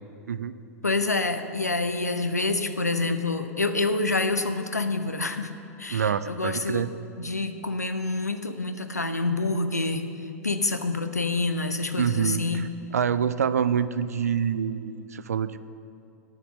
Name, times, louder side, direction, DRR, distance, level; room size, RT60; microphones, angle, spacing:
voice 1, 0.8-5.5 5.8-6.9 7.2-10.0 10.4-12.7, left 3 dB, 85° left, 9 dB, 0.6 m, -27 dB
voice 2, 5.9-6.9 12.0-12.7 12.9-15.7, right 7 dB, 70° right, 14 dB, 0.4 m, -26 dB
9.2 x 8.3 x 6.4 m, 2.6 s
figure-of-eight pair, 90°, 9 cm